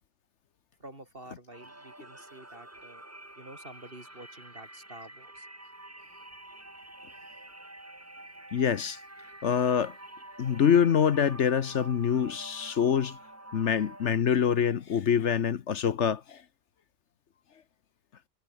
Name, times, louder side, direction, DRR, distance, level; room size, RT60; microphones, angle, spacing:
voice 1, 0.8-3.0 3.4-5.5, right 1 dB, 45° right, 5.4 m, -49 dB
sound 1, 1.5-14.2, right 1 dB, 10° right, 1.5 m, -48 dB
voice 2, 8.5-9.0 9.4-10.0 10.4-13.2 13.5-16.4, left 8 dB, 65° left, 1.2 m, -25 dB
omnidirectional pair, 1.3 m